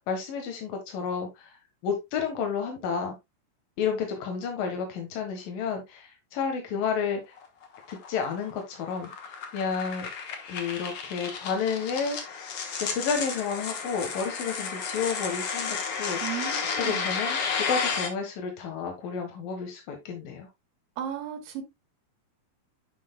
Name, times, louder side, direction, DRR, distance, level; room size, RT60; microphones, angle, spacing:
voice 1, 0.1-1.6 1.8-3.2 3.8-7.2 7.9-10.1 10.5-12.5 12.8-16.2 16.8-20.5, left 6 dB, 90° left, 3.1 m, -31 dB
sound 1, 7.4-18.1, left 5 dB, 55° left, 1.7 m, -32 dB
voice 2, 16.2-17.1 21.0-21.6, right 9 dB, 90° right, 3.0 m, -35 dB
9.6 x 5.6 x 2.2 m
omnidirectional pair, 3.9 m